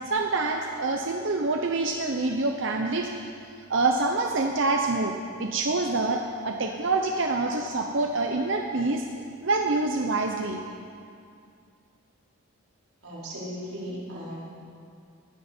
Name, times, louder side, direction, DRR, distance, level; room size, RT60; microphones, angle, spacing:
voice 1, 0.1-3.1 3.7-9.0 9.4-10.6, right 3 dB, 60° right, 3 dB, 0.8 m, -26 dB
voice 2, 13.0-14.4, equal, 90° right, -7 dB, 4.8 m, -36 dB
18.5 x 13.5 x 4.4 m, 2.4 s
head